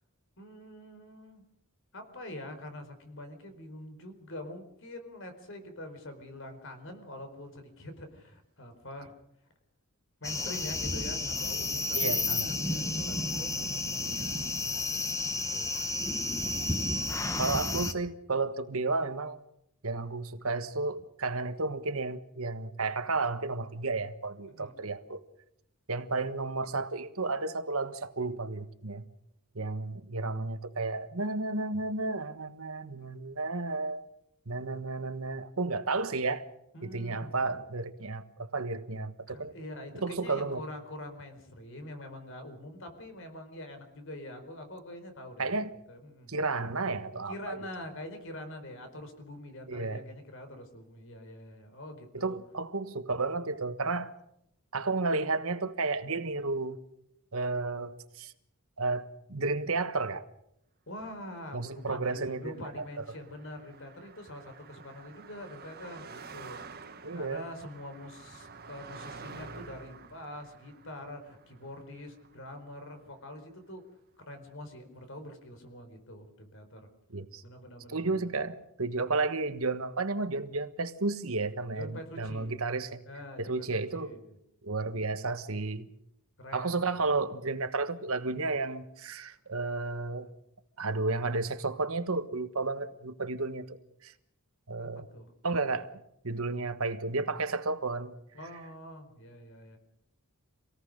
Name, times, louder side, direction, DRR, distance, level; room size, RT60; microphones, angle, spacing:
voice 1, 0.4-1.4 1.9-9.1 10.2-15.9 16.8-17.6 24.5-24.7 36.7-37.3 39.3-45.5 45.9-46.3 47.3-52.4 60.9-73.8 74.2-76.8 77.4-78.2 81.8-82.6 83.0-84.4 86.4-86.8 94.8-95.3 98.3-99.8, left 1 dB, 60° left, 4.5 m, -45 dB
sound 1, 10.2-17.9, left 2 dB, 15° left, 1.1 m, -31 dB
voice 2, 11.9-12.5 17.4-19.4 19.8-25.2 25.9-29.0 29.5-34.0 34.5-36.4 36.8-39.5 40.0-40.6 45.4-45.8 46.3-47.6 49.7-50.0 52.1-54.1 54.7-56.8 57.3-58.3 58.8-60.3 61.5-63.0 67.0-67.4 77.1-77.4 77.9-83.0 83.4-84.1 84.6-85.9 86.5-90.3 90.8-94.1 94.7-95.1 95.4-95.9 96.2-98.1, right 3 dB, 70° right, 1.4 m, -32 dB
Car passing by, 61.6-73.1, right 4 dB, 45° right, 1.7 m, -50 dB
26.5 x 18.0 x 6.6 m
head